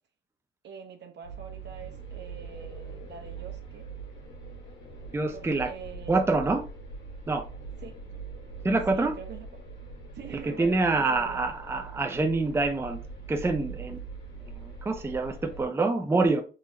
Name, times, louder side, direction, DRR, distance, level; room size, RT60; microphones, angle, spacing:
voice 1, 0.6-3.9 5.3-6.2 7.8-8.0 8.9-9.5 10.1-11.4, right 6 dB, 60° right, 1.0 m, -44 dB
sound 1, 1.2-15.7, right 4 dB, 65° left, 2.0 m, -42 dB
voice 2, 5.1-5.7 6.1-6.6 7.3-7.4 8.6-9.1 10.4-13.0 13.3-14.0 14.4-16.4, right 3 dB, 10° right, 0.5 m, -26 dB
3.9 x 3.0 x 2.8 m
cardioid pair, 90°, 20 cm